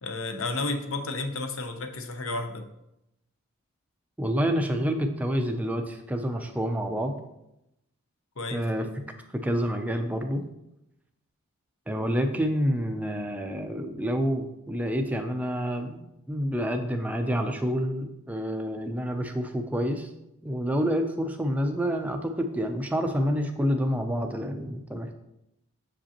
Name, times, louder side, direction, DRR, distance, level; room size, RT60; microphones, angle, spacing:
voice 1, 0.0-2.7 8.4-8.6, left 2 dB, 65° left, 6 dB, 0.7 m, -32 dB
voice 2, 4.2-7.2 8.5-8.9 9.3-10.4 11.9-16.0 16.3-20.1 20.4-25.1, equal, 5° right, 4 dB, 0.4 m, -28 dB
6.7 x 5.1 x 2.9 m, 0.85 s
head